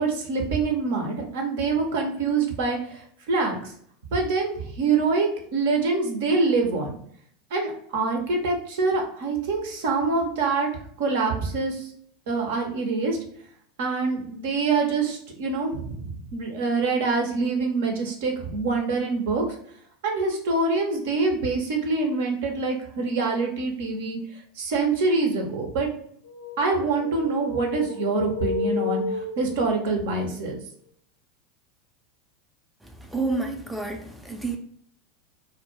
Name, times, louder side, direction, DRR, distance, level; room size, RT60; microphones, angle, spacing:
voice 1, 0.0-3.6 4.1-7.0 7.5-10.7 11.0-11.9 12.3-13.2 13.8-19.4 20.0-24.2 24.6-25.9 26.6-30.6, right 3 dB, 65° right, 2 dB, 0.6 m, -25 dB
sound 1, 26.2-29.9, left 3 dB, 85° left, 0.4 m, -31 dB
voice 2, 32.8-34.6, right 3 dB, 5° right, 2 dB, 0.4 m, -30 dB
2.1 x 2.0 x 3.0 m, 0.62 s
hypercardioid pair, 85°, 0 cm